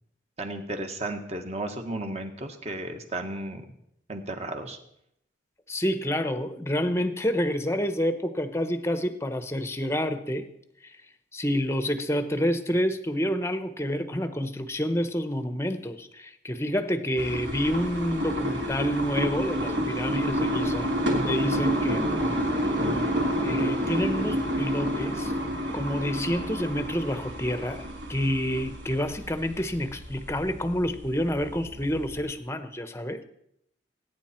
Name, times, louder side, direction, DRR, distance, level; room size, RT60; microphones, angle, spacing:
voice 1, 0.4-3.6 4.1-4.8, right 2 dB, 35° right, 5 dB, 1.6 m, -34 dB
voice 2, 5.7-10.5 10.8-11.0 11.3-22.0 23.4-25.3 25.7-27.8 28.1-33.2, equal, 15° left, 10 dB, 0.9 m, -28 dB
sound 1, 17.2-32.2, equal, 65° right, 3.2 m, -29 dB
22.0 x 9.7 x 4.4 m, 0.75 s
head